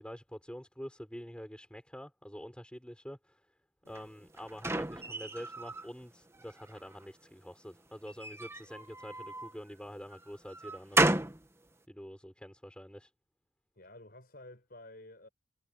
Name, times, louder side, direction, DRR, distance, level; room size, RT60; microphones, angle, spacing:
voice 1, 0.0-3.5 3.9-11.2 11.9-13.1, equal, 5° left, 5.7 m, -46 dB
sound 1, 3.9-5.9 6.3-7.1 8.1-9.5 10.1-11.4, right 2 dB, 15° right, 1.1 m, -33 dB
voice 2, 13.7-15.3, left 1 dB, 50° left, 7.0 m, -52 dB
head